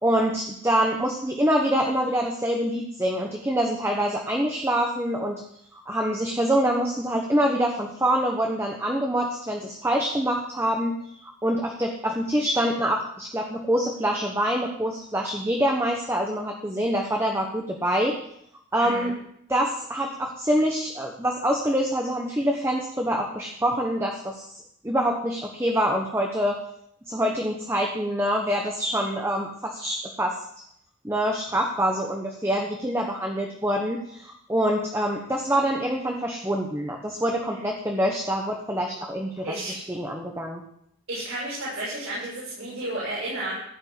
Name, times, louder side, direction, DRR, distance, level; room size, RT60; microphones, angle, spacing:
voice 1, 0.0-5.4 5.7-18.1 18.7-19.1 19.5-24.5 24.8-26.6 27.1-30.4 31.0-40.6, equal, 10° right, 1 dB, 1.0 m, -25 dB
voice 2, 18.8-19.1 39.4-39.7 41.1-43.5, right 1 dB, 80° right, -8 dB, 6.5 m, -32 dB
15.5 x 5.4 x 8.2 m, 0.73 s
head